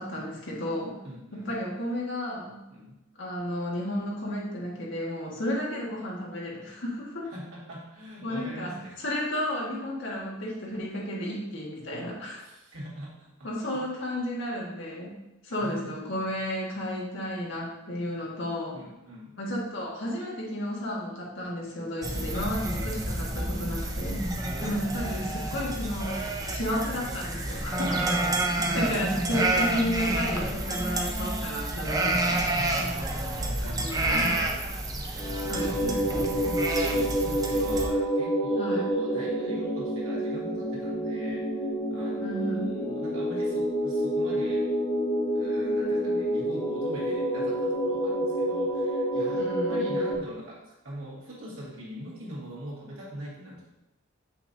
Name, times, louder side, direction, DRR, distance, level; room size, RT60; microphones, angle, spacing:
voice 1, 0.0-1.0 1.3-2.6 3.2-7.3 8.2-12.4 13.4-15.2 15.4-18.8 19.4-24.2 24.6-28.1 28.7-32.4 33.6-34.3 35.5-36.0 38.6-38.9 42.2-42.7 49.3-49.9, equal, 60° left, -4 dB, 1.7 m, -32 dB
voice 2, 1.0-1.5 2.7-3.0 7.3-9.0 12.4-13.8 15.5-15.8 18.7-19.4 24.5-25.0 29.1-29.4 32.7-34.5 35.1-35.9 36.2-44.7 45.2-53.7, equal, 90° right, -6 dB, 2.3 m, -42 dB
sound 1, 22.0-37.9, right 2 dB, 15° right, 0.6 m, -29 dB
sound 2, 35.2-50.2, equal, 10° left, 0.8 m, -28 dB
6.5 x 5.9 x 2.8 m, 0.94 s
head